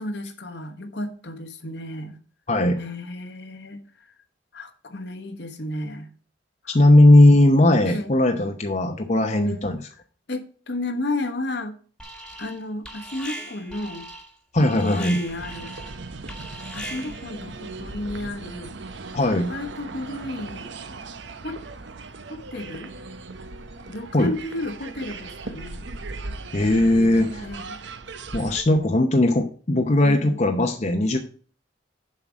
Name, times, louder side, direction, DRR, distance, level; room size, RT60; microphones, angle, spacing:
voice 1, 0.0-2.2 2.7-4.1 4.5-6.1 6.6-6.8 7.8-8.1 9.4-9.7 10.3-11.8 12.4-14.1 14.6-15.7 16.7-18.7 19.5-20.7 21.4-21.6 22.3-22.9 23.9-25.9 26.7-27.1 27.4-27.8 30.0-30.4, left 1 dB, 60° left, 6 dB, 1.3 m, -33 dB
voice 2, 2.5-2.8 6.7-9.8 14.5-15.2 19.1-19.5 24.1-24.3 26.5-27.5 28.3-31.2, left 1 dB, 40° left, 4 dB, 0.8 m, -18 dB
Alarm, 12.0-12.6 12.8-17.3, right 1 dB, 5° left, 1.4 m, -39 dB
sound 1, 15.3-28.6, right 3 dB, 70° right, 0.8 m, -38 dB
7.3 x 5.7 x 6.2 m, 0.42 s
head